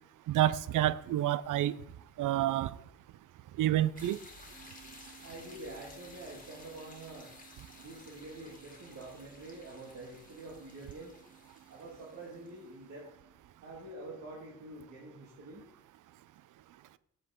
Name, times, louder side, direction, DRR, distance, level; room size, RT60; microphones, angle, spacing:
voice 1, 0.3-1.7 2.2-2.7 3.6-4.2, right 13 dB, 75° right, 0.5 m, -28 dB
sound 1, 4.0-12.8, left 2 dB, 25° left, 1.8 m, -55 dB
sound 2, 4.5-13.3, right 8 dB, 5° left, 1.3 m, -60 dB
voice 2, 5.2-7.3 7.8-11.2 11.7-13.1 13.6-15.7, right 2 dB, 60° right, 2.0 m, -47 dB
7.8 x 7.0 x 3.6 m
cardioid pair, 95°, 32 cm